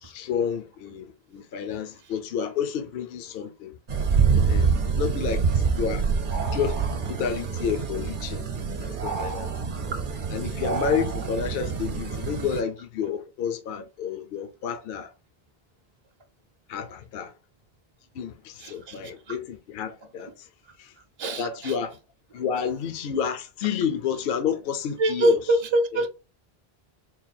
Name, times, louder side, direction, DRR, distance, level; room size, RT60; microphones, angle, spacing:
voice 1, 0.0-3.8 4.4-4.7 5.0-6.0 6.5-8.5 8.8-9.5 10.3-15.1 16.7-17.3 18.2-20.5 20.8-20.9 21.4-22.0 22.3-25.6 26.0-26.1, left 7 dB, 70° left, 0.8 m, -30 dB
sound 1, 3.9-12.6, right 5 dB, 55° right, 0.9 m, -26 dB
voice 2, 18.6-18.9 21.2-21.7 25.0-26.1, right 1 dB, 35° right, 0.5 m, -24 dB
3.9 x 2.3 x 4.1 m
omnidirectional pair, 1.0 m